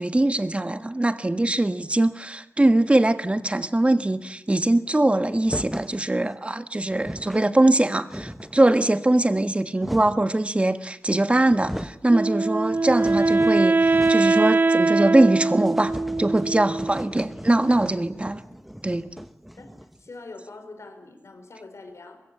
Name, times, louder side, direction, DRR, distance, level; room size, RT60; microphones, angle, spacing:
voice 1, 0.0-15.9 16.2-18.4 18.8-19.1, right 1 dB, 25° right, 1.4 m, -22 dB
sound 1, 5.4-6.0 6.6-6.7 6.9-7.5 7.8-8.7 9.4-10.3 11.1-11.2 11.4-12.0 12.5-14.4 14.7-14.8 15.1-15.2 15.6-20.1, equal, ahead, 1.1 m, -37 dB
Wind instrument woodwind instrument, 12.1-17.1, right 3 dB, 45° right, 0.9 m, -22 dB
voice 2, 20.0-22.2, left 3 dB, 75° left, 4.6 m, -43 dB
23.0 x 22.0 x 9.0 m
wide cardioid pair, 90°, 5 cm